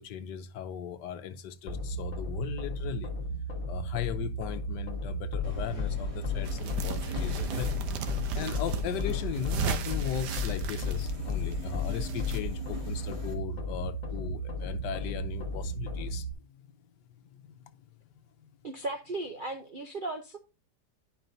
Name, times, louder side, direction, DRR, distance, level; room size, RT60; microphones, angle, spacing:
voice 1, 0.0-3.1 3.7-7.8 8.3-16.3 16.7-16.8 17.4-17.7 18.4-18.5, left 10 dB, 80° left, 1.4 m, -38 dB
sound 1, 1.7-16.3, left 2 dB, 45° left, 1.6 m, -34 dB
Subway metro underground, 5.4-13.3, right 1 dB, 20° right, 2.2 m, -44 dB
sound 2, 6.4-12.4, right 8 dB, 75° right, 1.4 m, -37 dB
voice 2, 18.6-20.4, right 2 dB, 60° right, 0.5 m, -36 dB
10.5 x 5.3 x 2.6 m
omnidirectional pair, 1.8 m